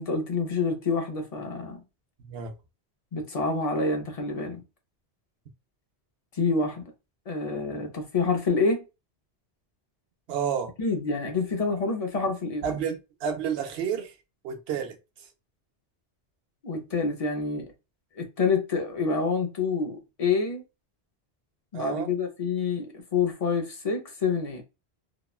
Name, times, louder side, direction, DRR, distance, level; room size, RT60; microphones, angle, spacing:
voice 1, 0.0-1.8 3.1-4.6 6.3-6.8 7.3-8.8 10.8-12.8 16.6-17.7 18.2-20.6 21.7-24.6, left 4 dB, 40° left, 0.6 m, -27 dB
voice 2, 2.2-2.5 10.3-10.7 12.6-14.1 14.4-15.0 21.7-22.1, right 7 dB, 75° right, 0.8 m, -30 dB
2.9 x 2.1 x 2.3 m
omnidirectional pair, 1.1 m